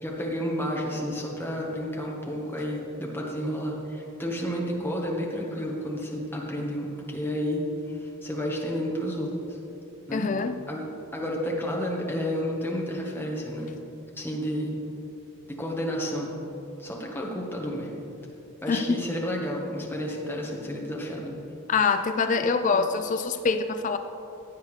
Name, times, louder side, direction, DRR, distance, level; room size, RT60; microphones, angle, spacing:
voice 1, 0.0-9.6 10.1-10.3 10.7-13.7 14.1-14.7 15.5-16.4 16.8-17.9 18.6-21.4, equal, 10° left, -2 dB, 1.3 m, -31 dB
voice 2, 10.1-10.6 18.7-18.9 21.7-24.0, left 5 dB, 35° left, 9 dB, 0.3 m, -25 dB
15.5 x 8.0 x 3.3 m, 3.0 s
head